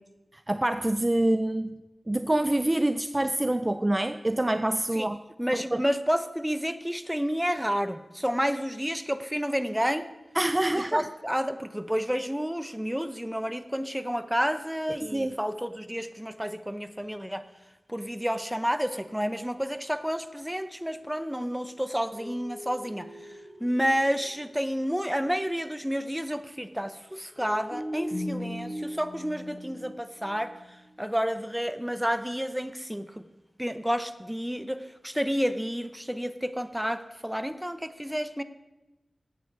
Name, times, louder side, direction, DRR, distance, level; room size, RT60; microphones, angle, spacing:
voice 1, 0.3-1.8 2.1-5.2 5.5-5.8 10.4-11.1 15.1-15.3, right 1 dB, 25° right, 11 dB, 0.4 m, -26 dB
voice 2, 5.4-10.1 10.9-17.4 17.9-30.5 31.0-33.3 33.6-38.4, equal, 5° right, 11 dB, 0.7 m, -30 dB
sound 1, 22.1-24.7 24.9-25.0 27.3-30.9, equal, 50° left, 2.4 m, -39 dB
10.5 x 8.5 x 4.7 m, 1.0 s
cardioid pair, 45°, 0 cm